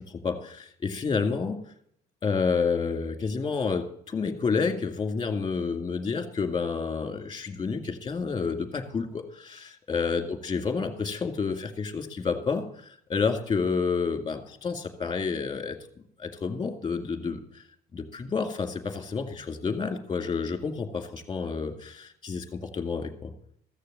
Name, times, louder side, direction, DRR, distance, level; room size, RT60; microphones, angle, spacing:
voice 1, 0.2-1.6 2.2-15.8 16.2-17.4 17.9-23.3, left 5 dB, 25° left, 5 dB, 2.2 m, -29 dB
14.5 x 6.6 x 7.5 m, 0.65 s
cardioid pair, 110°, 17 cm